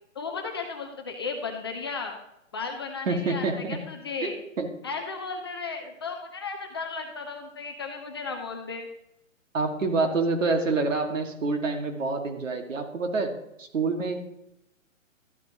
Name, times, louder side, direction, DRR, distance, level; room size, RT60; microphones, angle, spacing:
voice 1, 0.2-2.2 2.5-4.4 4.8-8.9, left 4 dB, 20° left, 3 dB, 0.5 m, -35 dB
voice 2, 3.1-3.8 4.2-4.7 9.5-13.3 13.6-14.2, right 3 dB, 70° right, 5 dB, 1.9 m, -27 dB
13.0 x 8.0 x 2.9 m, 0.86 s
hypercardioid pair, 140°, 40 cm